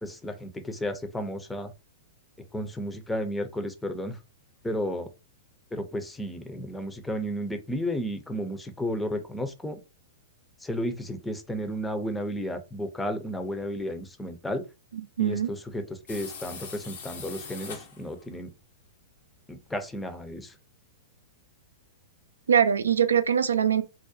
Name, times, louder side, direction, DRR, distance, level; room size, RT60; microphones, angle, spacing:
voice 1, 0.0-1.7 2.5-4.2 4.6-5.1 5.7-9.8 10.6-14.6 15.2-18.5 19.5-20.5, equal, 10° left, 0.5 m, -33 dB
voice 2, 14.9-15.5 22.5-23.8, right 8 dB, 80° right, 0.3 m, -23 dB
sound 1, 16.1-18.2, left 5 dB, 70° left, 0.7 m, -41 dB
2.5 x 2.0 x 2.6 m
hypercardioid pair, 105°, 0 cm